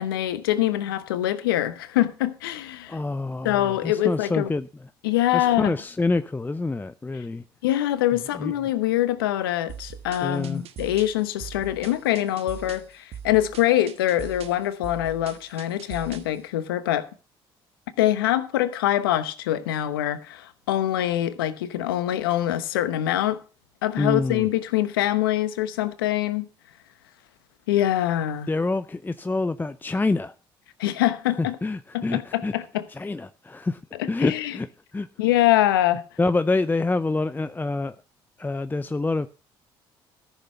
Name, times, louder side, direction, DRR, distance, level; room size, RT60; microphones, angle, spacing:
voice 1, 0.0-3.0 3.4-4.5 5.0-5.7 7.6-17.1 18.0-23.4 23.8-26.5 27.7-28.5 30.8-31.6 31.9-32.8 34.0-34.5 35.2-36.0, left 13 dB, 90° left, 1.0 m, -24 dB
voice 2, 2.9-4.9 5.3-7.4 8.4-8.8 10.2-10.6 24.0-24.5 28.5-30.3 31.4-32.5 32.9-33.8 34.1-35.1 36.2-38.0 38.4-39.3, left 3 dB, 15° left, 0.6 m, -27 dB
sound 1, 9.7-16.4, right 8 dB, 60° right, 1.4 m, -41 dB
14.0 x 6.7 x 5.6 m
hypercardioid pair, 60°, 12 cm